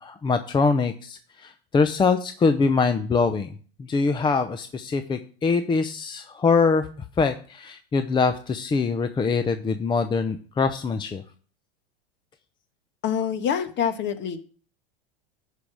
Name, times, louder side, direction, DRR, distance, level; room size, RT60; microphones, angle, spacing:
voice 1, 0.0-3.5 3.8-6.9 7.2-11.2, left 4 dB, 15° left, 9 dB, 0.7 m, -23 dB
voice 2, 13.0-14.4, left 8 dB, 40° left, 9 dB, 1.4 m, -26 dB
11.5 x 5.1 x 6.2 m, 0.42 s
supercardioid pair, 120°, 30 cm